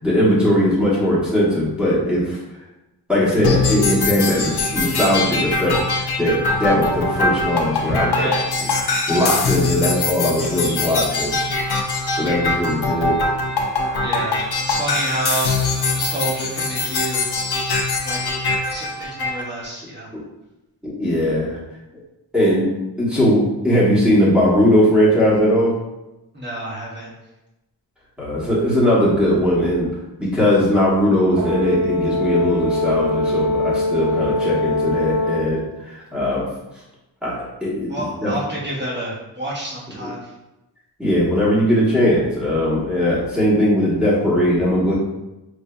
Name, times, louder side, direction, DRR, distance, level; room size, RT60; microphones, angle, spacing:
voice 1, 0.0-2.4 3.1-8.3 8.8-11.3 11.9-13.3 20.8-21.6 22.3-22.7 23.0-25.7 28.2-29.9 30.2-36.5 37.2-37.9 38.2-38.3 40.0-40.1 41.0-44.9, equal, ahead, -7 dB, 1.0 m, -19 dB
sound 1, 3.4-19.4, left 3 dB, 65° left, 0.6 m, -22 dB
voice 2, 13.9-15.6 15.9-17.3 18.0-18.2 18.7-20.1 26.3-27.1 37.9-40.3, right 1 dB, 25° right, -6 dB, 1.0 m, -28 dB
Brass instrument, 31.4-35.6, left 2 dB, 80° right, 0.5 m, -22 dB
4.9 x 2.6 x 2.2 m, 0.98 s
wide cardioid pair, 160°, 41 cm